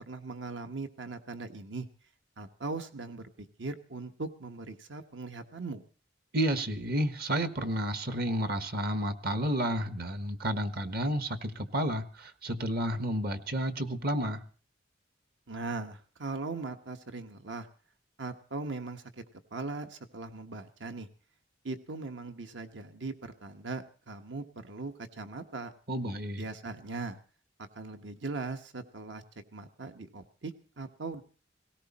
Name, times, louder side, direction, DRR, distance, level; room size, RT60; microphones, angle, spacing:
voice 1, 0.0-1.9 2.4-5.8 15.5-17.7 18.2-19.2 19.5-21.1 21.6-25.7 26.4-27.2 27.7-29.2 29.5-31.2, right 3 dB, 70° right, 8 dB, 1.3 m, -39 dB
voice 2, 6.3-14.4 25.9-26.4, equal, 55° right, 10 dB, 1.4 m, -31 dB
18.5 x 18.0 x 4.3 m, 0.39 s
head